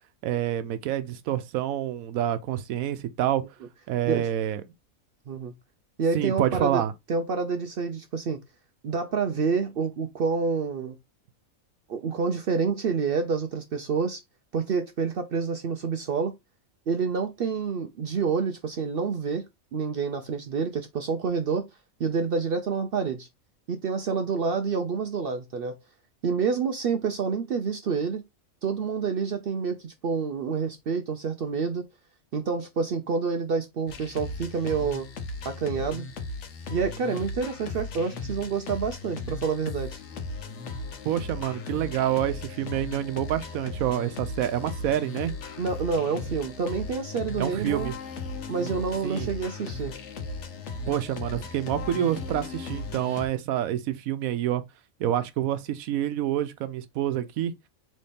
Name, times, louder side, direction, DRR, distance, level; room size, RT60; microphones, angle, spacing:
voice 1, 0.2-3.4 3.9-4.6 6.1-6.9 41.0-45.3 47.4-47.9 49.0-49.3 50.9-54.6 55.0-57.5, right 11 dB, 80° right, 1.1 m, -27 dB
voice 2, 6.0-6.8 7.1-8.4 8.8-11.0 11.9-14.2 14.5-16.3 16.9-19.5 19.7-21.7 22.0-23.3 23.7-25.8 26.2-28.2 28.6-31.9 32.3-35.1 35.4-36.1 36.7-40.0 45.6-47.9 48.5-50.0, right 5 dB, 65° right, 0.6 m, -28 dB
sound 1, 33.9-53.3, left 3 dB, 65° left, 1.0 m, -37 dB
4.1 x 3.2 x 3.4 m
omnidirectional pair, 1.4 m